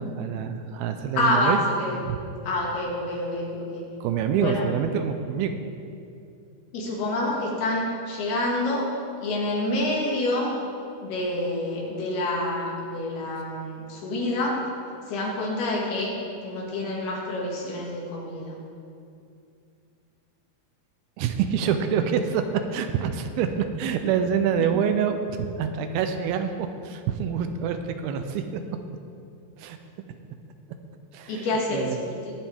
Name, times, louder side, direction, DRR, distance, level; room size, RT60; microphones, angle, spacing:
voice 1, 0.0-1.6 2.0-2.2 4.0-5.6 21.2-28.6 29.6-29.8 31.1-32.1, right 7 dB, 85° right, 8 dB, 2.4 m, -26 dB
voice 2, 1.2-2.0 2.4-3.8 4.4-4.6 6.7-8.9 9.2-10.5 11.0-14.6 15.1-16.1 16.4-18.6 24.6-24.7 31.3-31.9 32.2-32.3, left 1 dB, 80° left, -3 dB, 4.0 m, -27 dB
20.0 x 7.3 x 3.5 m, 2.5 s
omnidirectional pair, 4.5 m